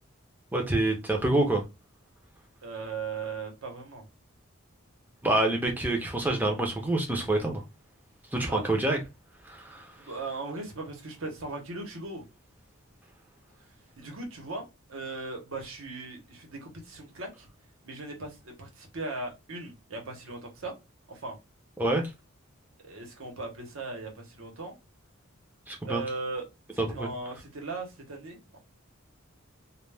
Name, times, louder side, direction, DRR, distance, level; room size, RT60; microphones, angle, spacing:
voice 1, 0.5-1.6 5.2-7.6 8.3-9.0 9.5-9.8 21.8-22.1 25.7-26.0 26.8-27.1, right 2 dB, 10° right, 0.6 m, -27 dB
voice 2, 2.6-4.0 8.5-8.6 10.0-12.2 14.0-17.5 17.8-20.7 21.1-21.3 22.8-24.8 25.8-26.5 26.7-28.6, right 3 dB, 75° right, 0.9 m, -38 dB
2.3 x 2.2 x 3.2 m
head